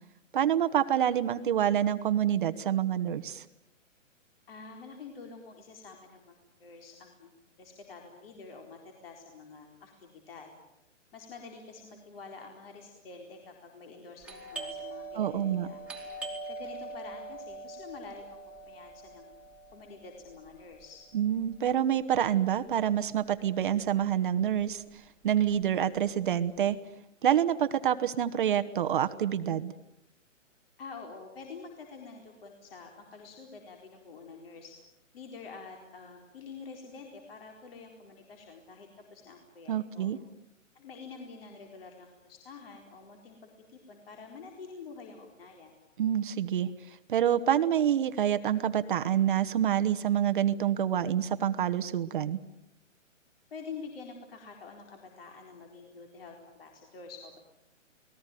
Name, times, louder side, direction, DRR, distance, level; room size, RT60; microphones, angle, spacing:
voice 1, 0.3-3.4 15.1-15.7 21.1-24.8 25.2-26.8 27.2-29.7 39.7-40.2 46.0-46.7 47.1-52.4, right 10 dB, 40° right, 11 dB, 1.1 m, -27 dB
voice 2, 4.5-7.3 7.6-10.5 11.1-15.8 16.5-19.3 19.7-21.0 30.8-34.7 35.1-40.1 40.7-45.7 53.5-57.4, left 4 dB, 50° left, 3 dB, 4.3 m, -47 dB
Doorbell, 14.2-23.6 23.9-24.0 24.6-24.9 25.3-26.7, right 2 dB, 5° right, 2.4 m, -43 dB
29.0 x 20.0 x 9.2 m, 0.88 s
hypercardioid pair, 160°, 38 cm